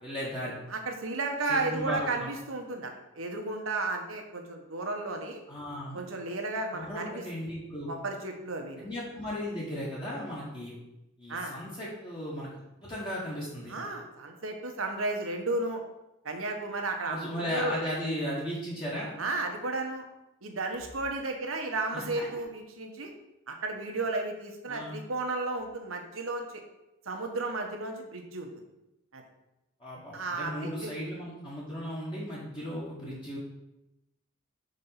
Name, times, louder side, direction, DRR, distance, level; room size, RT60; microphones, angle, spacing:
voice 1, 0.0-0.5 1.5-2.3 5.5-6.0 6.7-7.9 8.8-10.7 11.2-12.5 12.8-13.7 17.1-19.1 21.9-22.3 24.7-24.9 29.8-33.4, equal, 25° left, -7 dB, 1.3 m, -36 dB
voice 2, 0.7-5.4 5.9-7.2 7.9-8.9 11.3-11.5 13.7-15.8 16.2-17.8 19.2-20.0 20.4-23.1 23.5-26.6 27.1-28.5 29.1-29.2 30.1-30.9, right 2 dB, 80° right, 4 dB, 1.0 m, -33 dB
5.3 x 4.1 x 5.7 m, 0.94 s
head